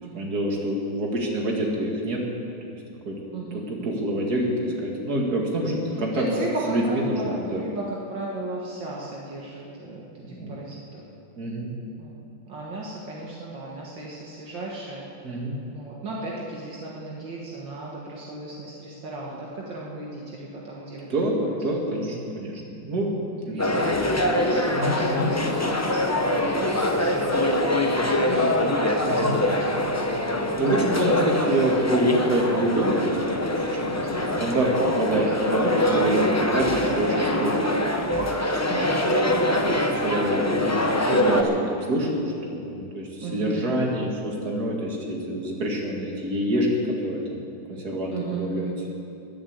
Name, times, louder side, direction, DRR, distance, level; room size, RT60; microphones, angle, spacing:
voice 1, 0.1-2.2 3.0-3.2 3.8-6.2 6.7-7.6 10.2-10.5 11.4-11.7 15.2-15.6 21.1-23.9 24.7-25.3 29.1-29.4 30.6-37.7 39.6-42.2 42.5-47.4 47.7-48.7, right 1 dB, 50° right, -1 dB, 2.8 m, -26 dB
voice 2, 3.3-4.0 6.1-11.0 12.0-12.1 12.5-15.0 15.7-21.1 21.4-21.5 23.0-23.2 23.5-27.8 28.1-30.1 34.1-34.2 38.7-39.1 43.2-43.8 48.1-48.8, right 2 dB, 75° right, -4 dB, 2.3 m, -35 dB
sound 1, 23.6-41.4, left 1 dB, 20° left, 0.4 m, -24 dB
21.5 x 7.5 x 8.2 m, 2.6 s
omnidirectional pair, 2.1 m